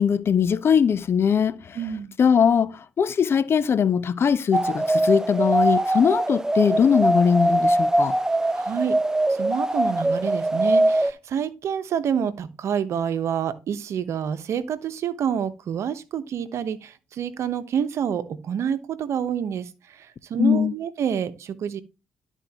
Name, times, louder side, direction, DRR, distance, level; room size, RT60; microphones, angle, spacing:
voice 1, 0.0-1.8 2.2-8.2 20.4-20.7, left 7 dB, 50° left, 0.7 m, -21 dB
voice 2, 1.7-2.1 8.5-9.0 9.3-21.8, right 8 dB, 65° right, 1.0 m, -28 dB
sound 1, 4.5-11.1, right 1 dB, 10° right, 0.5 m, -22 dB
12.5 x 4.5 x 2.9 m
hypercardioid pair, 50°, 5 cm